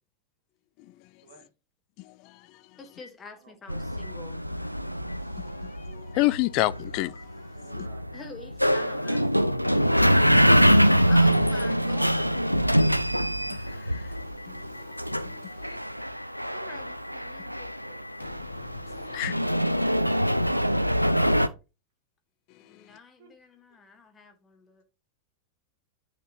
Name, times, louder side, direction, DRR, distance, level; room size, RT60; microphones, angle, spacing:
voice 1, 2.8-4.4 8.1-9.4 11.1-12.3 16.5-18.1 22.6-24.8, left 4 dB, 20° left, 1.5 m, -47 dB
Boom, 3.0-3.1 4.0-4.1 5.1-5.2 6.1-6.2 7.1-7.2 8.1-8.2 9.1-9.2 9.9-10.0 10.7-10.8 11.3-11.4 11.8-11.9 12.3-12.4 12.7-12.8 13.1-20.6, left 2 dB, 80° left, 0.9 m, -45 dB
voice 2, 3.3-4.5 6.1-6.3 7.5-8.2 23.2-23.4, right 4 dB, 55° right, 1.5 m, -55 dB
sound 1, 3.7-21.5, equal, 90° right, 0.3 m, -24 dB
voice 3, 5.9-7.1 7.8-7.9 13.9-14.0 14.5-14.6 15.2-15.3 19.1-19.4, left 20 dB, 45° left, 0.3 m, -26 dB
9.1 x 4.4 x 2.9 m
figure-of-eight pair, 90°, 0 cm